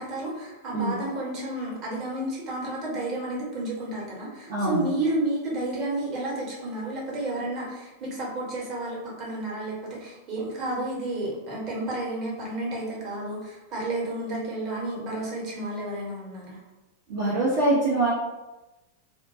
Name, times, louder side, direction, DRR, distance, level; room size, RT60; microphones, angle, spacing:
voice 1, 0.0-16.6, right 1 dB, 35° right, -5 dB, 0.9 m, -31 dB
voice 2, 4.5-4.8 17.1-18.1, right 2 dB, 55° right, -7 dB, 0.6 m, -23 dB
2.3 x 2.1 x 2.6 m, 1.1 s
figure-of-eight pair, 90°, 0 cm